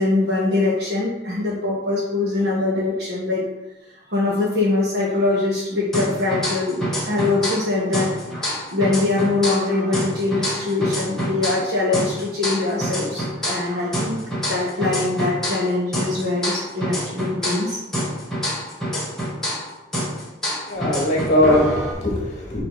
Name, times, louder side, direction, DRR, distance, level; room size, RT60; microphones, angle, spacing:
voice 1, 0.0-3.4 4.1-8.1 8.7-14.2 14.5-17.8, left 2 dB, 55° right, -6 dB, 1.5 m, -23 dB
sound 1, 5.9-7.7 7.9-11.7 11.9-15.7 15.9-19.7 19.9-21.9, equal, ahead, 1.8 m, -26 dB
voice 2, 20.7-22.6, left 1 dB, 35° left, -3 dB, 2.3 m, -20 dB
9.3 x 3.4 x 4.8 m, 1.0 s
head